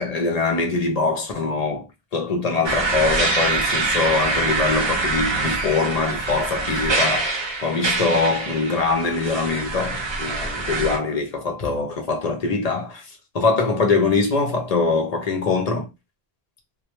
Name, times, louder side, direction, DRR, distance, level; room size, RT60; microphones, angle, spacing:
voice 1, 0.0-7.3 7.6-13.1 13.3-15.9, left 4 dB, 50° left, 0.5 m, -23 dB
sound 1, 2.6-11.0, right 3 dB, 40° right, 0.4 m, -24 dB
2.2 x 2.1 x 2.8 m
omnidirectional pair, 1.1 m